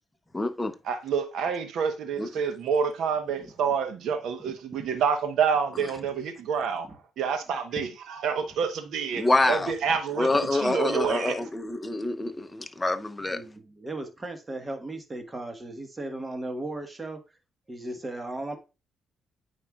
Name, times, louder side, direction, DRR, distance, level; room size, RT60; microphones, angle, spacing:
voice 1, 0.3-0.7 2.2-2.3 9.1-9.7 10.2-13.4, left 2 dB, 15° left, 0.8 m, -26 dB
voice 2, 0.8-6.9 7.2-11.4, right 6 dB, 75° right, 0.9 m, -28 dB
voice 3, 13.2-17.2 17.7-18.6, right 2 dB, 25° right, 1.3 m, -36 dB
8.9 x 4.5 x 2.3 m
cardioid pair, 90°, 0 cm